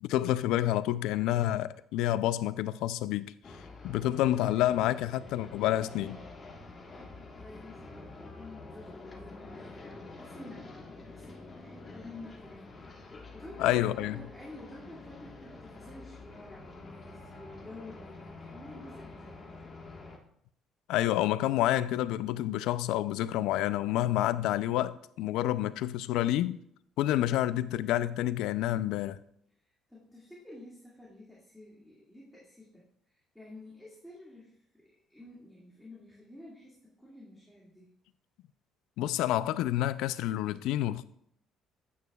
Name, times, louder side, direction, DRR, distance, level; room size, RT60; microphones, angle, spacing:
voice 1, 0.0-3.3 3.8-6.2 13.6-14.2 20.9-26.6 27.0-29.2 39.0-41.0, left 13 dB, 85° left, 0.3 m, -28 dB
sound 1, 3.4-20.2, left 3 dB, 30° left, 1.3 m, -48 dB
voice 2, 6.5-10.7 11.1-12.7 13.0-19.7 29.6-37.9, left 2 dB, ahead, 2.0 m, -50 dB
9.3 x 8.2 x 2.3 m
cardioid pair, 120°, 0 cm